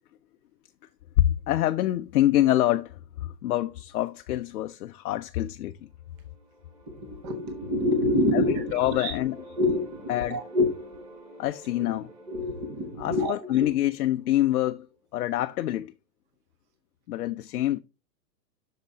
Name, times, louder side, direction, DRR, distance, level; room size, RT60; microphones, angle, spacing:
voice 1, 1.2-5.9 8.3-9.6 10.1-10.4 11.4-12.1 13.0-14.9 15.1-15.9 17.1-17.8, left 14 dB, 65° left, 0.5 m, -26 dB
sound 1, 5.8-15.0, right 1 dB, 85° right, 4.6 m, -49 dB
voice 2, 6.9-9.1 9.6-11.0 12.3-13.3 13.6-13.7, left 1 dB, 20° right, 0.8 m, -27 dB
8.2 x 6.6 x 2.7 m
hypercardioid pair, 165°, 50 cm